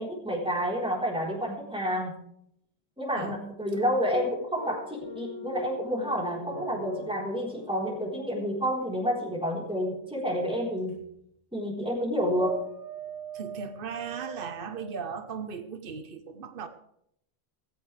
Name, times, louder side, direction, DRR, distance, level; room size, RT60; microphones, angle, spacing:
voice 1, 0.0-2.1 3.0-10.9 11.5-12.6, equal, 5° right, 4.1 m, -29 dB
sound 1, 4.1-9.2 10.8-11.0 12.4-15.2, right 2 dB, 80° left, 8.4 m, -42 dB
voice 2, 13.3-16.7, right 6 dB, 55° right, 1.2 m, -37 dB
16.5 x 16.5 x 3.4 m
omnidirectional pair, 1.1 m